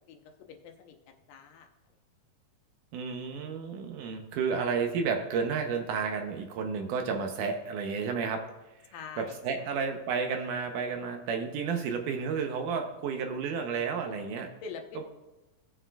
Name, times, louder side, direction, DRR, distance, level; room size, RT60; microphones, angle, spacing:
voice 1, 0.0-1.7 8.9-9.7 14.6-15.0, left 5 dB, 85° left, 4 dB, 2.7 m, -45 dB
voice 2, 2.9-8.5 9.2-14.5 15.0-15.1, right 5 dB, 75° right, 4 dB, 2.1 m, -31 dB
17.0 x 6.2 x 2.3 m, 1.0 s
omnidirectional pair, 4.0 m